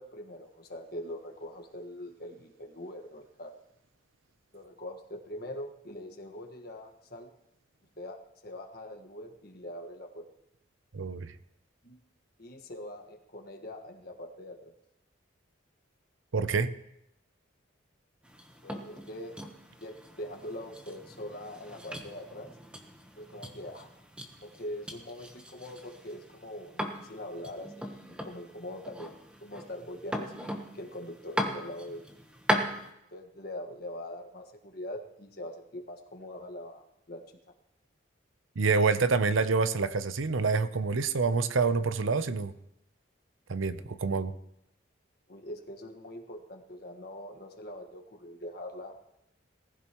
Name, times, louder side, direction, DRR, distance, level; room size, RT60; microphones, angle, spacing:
voice 1, 0.0-3.5 4.5-7.3 8.0-10.3 11.8-12.0 12.4-14.7 18.6-19.4 19.8-22.5 23.2-23.9 24.4-29.1 29.4-32.0 33.1-37.2 45.3-49.0, left 1 dB, 50° left, 3 dB, 1.6 m, -43 dB
voice 2, 10.9-11.3 16.3-16.7 38.6-42.5 43.5-44.3, right 4 dB, 80° right, 12 dB, 0.7 m, -27 dB
sound 1, 18.2-32.9, equal, 5° right, 1.1 m, -38 dB
19.5 x 15.0 x 3.1 m, 0.83 s
head